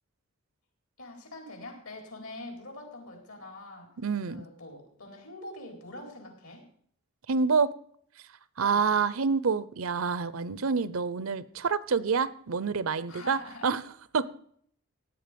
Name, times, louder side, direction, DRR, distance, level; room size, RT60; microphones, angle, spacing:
voice 1, 1.0-3.9 4.3-6.6 8.6-8.9 13.1-13.7, left 2 dB, 75° left, 2 dB, 4.4 m, -44 dB
voice 2, 4.0-4.4 7.3-7.7 8.6-13.8 14.1-14.3, right 5 dB, 70° right, 18 dB, 0.6 m, -27 dB
16.5 x 9.6 x 5.2 m, 0.63 s
head